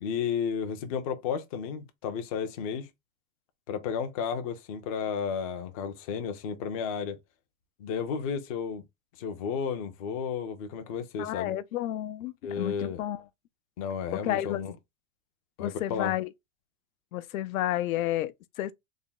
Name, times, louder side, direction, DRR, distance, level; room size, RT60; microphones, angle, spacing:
voice 1, 0.0-2.9 3.7-7.2 7.8-8.8 9.2-11.5 12.4-13.0 13.8-14.7 15.6-16.1, left 6 dB, 30° left, 0.4 m, -32 dB
voice 2, 11.2-13.2 14.1-14.6 15.6-16.3 17.1-18.7, left 13 dB, 85° left, 0.6 m, -31 dB
3.5 x 2.1 x 3.8 m
supercardioid pair, 160°, 40 cm